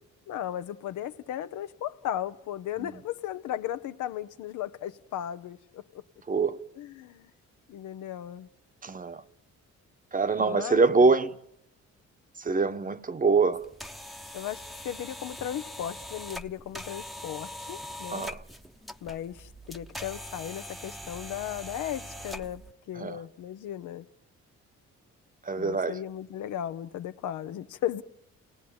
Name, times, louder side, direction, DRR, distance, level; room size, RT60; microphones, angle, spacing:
voice 1, 0.3-6.0 6.8-7.3 7.7-8.5 10.4-11.1 14.3-18.2 19.0-24.1 25.6-28.0, left 11 dB, 80° left, 1.0 m, -36 dB
voice 2, 6.3-6.6 8.8-9.2 10.1-11.4 12.4-13.6 18.1-18.4 23.0-23.2 25.4-26.0, right 4 dB, 25° right, 1.0 m, -24 dB
sound 1, 13.5-22.7, equal, ahead, 0.9 m, -42 dB
29.0 x 18.5 x 8.8 m
cardioid pair, 90°, 30 cm